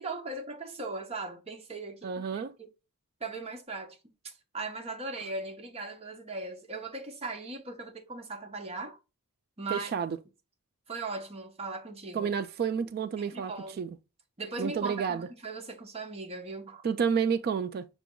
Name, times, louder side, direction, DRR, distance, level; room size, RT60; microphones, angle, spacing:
voice 1, 0.0-2.7 3.2-4.0 4.2-9.0 9.6-9.9 10.9-12.3 13.2-13.8 14.4-16.8, right 3 dB, 25° right, 0.8 m, -38 dB
voice 2, 2.0-2.5 9.7-10.2 12.1-13.5 13.8-13.9 14.6-15.3 16.8-17.9, right 6 dB, 45° right, 0.3 m, -30 dB
5.9 x 2.3 x 3.6 m
head